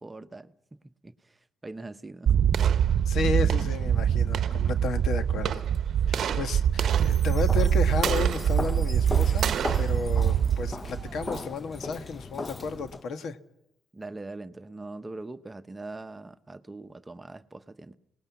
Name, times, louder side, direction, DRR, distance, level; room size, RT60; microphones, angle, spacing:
voice 1, 0.0-1.4 1.6-2.4 6.1-6.4 13.9-17.9, right 2 dB, 20° right, 0.9 m, -42 dB
sound 1, 2.3-11.4, right 9 dB, 65° right, 0.8 m, -24 dB
voice 2, 3.0-5.6 6.1-13.4, left 5 dB, 65° left, 1.5 m, -33 dB
Chime, 6.9-11.3, equal, 10° left, 4.6 m, -51 dB
Walk footsteps, 7.5-13.0, left 2 dB, 25° left, 1.0 m, -38 dB
27.5 x 19.5 x 8.3 m
cardioid pair, 90°, 0 cm